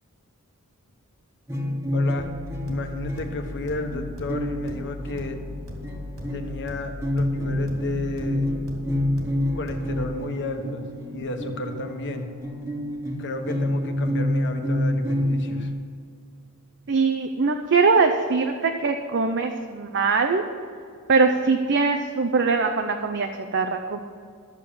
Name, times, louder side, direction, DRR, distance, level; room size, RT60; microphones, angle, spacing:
sound 1, 1.5-6.6 7.0-15.7, left 1 dB, 15° right, 1.5 m, -28 dB
voice 1, 1.9-2.3 2.7-5.4 6.3-8.6 9.5-12.3 13.2-15.7, left 2 dB, 55° left, 5 dB, 1.3 m, -33 dB
sound 2, 2.2-10.2, left 2 dB, 90° right, 2.9 m, -38 dB
voice 2, 16.9-20.4 21.1-24.0, right 4 dB, 55° right, 5 dB, 0.7 m, -22 dB
13.5 x 7.4 x 7.0 m, 2.2 s
head